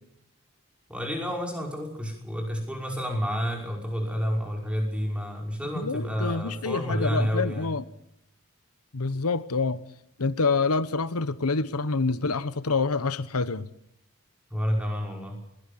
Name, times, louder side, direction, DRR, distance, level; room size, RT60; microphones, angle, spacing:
voice 1, 0.9-7.7 14.5-15.4, equal, 5° right, 1 dB, 5.5 m, -29 dB
voice 2, 5.7-7.8 8.9-9.8 10.2-13.7, left 4 dB, 90° left, 15 dB, 1.1 m, -27 dB
20.5 x 17.5 x 8.7 m, 0.79 s
head